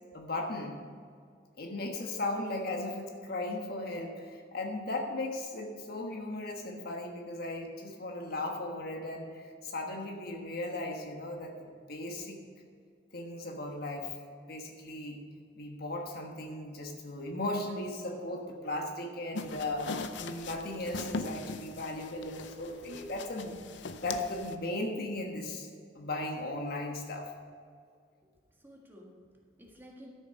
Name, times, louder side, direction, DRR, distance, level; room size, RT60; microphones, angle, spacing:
voice 1, 0.1-0.8 1.6-12.4 13.1-14.1 14.5-15.2 15.6-23.6 24.0-25.7 25.9-27.3, left 2 dB, 60° left, 2 dB, 1.3 m, -37 dB
sound 1, 19.3-24.5, left 3 dB, 80° left, 0.6 m, -40 dB
voice 2, 28.2-30.1, equal, 10° right, -2 dB, 1.6 m, -54 dB
12.5 x 7.0 x 5.2 m, 2.2 s
head